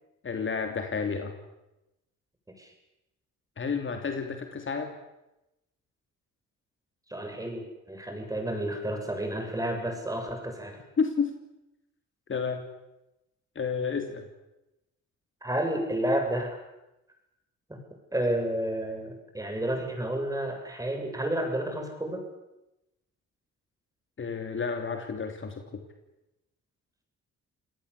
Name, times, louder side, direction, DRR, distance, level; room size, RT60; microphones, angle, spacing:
voice 1, 0.2-1.3 3.6-4.9 11.0-11.3 12.3-12.7 13.5-14.3 24.2-25.8, left 5 dB, 40° left, 6 dB, 3.0 m, -31 dB
voice 2, 7.1-10.8 15.4-16.6 17.7-17.8 18.1-22.2, right 1 dB, 10° right, 3 dB, 7.6 m, -31 dB
27.5 x 19.0 x 8.4 m, 0.93 s
cardioid pair, 90°, 30 cm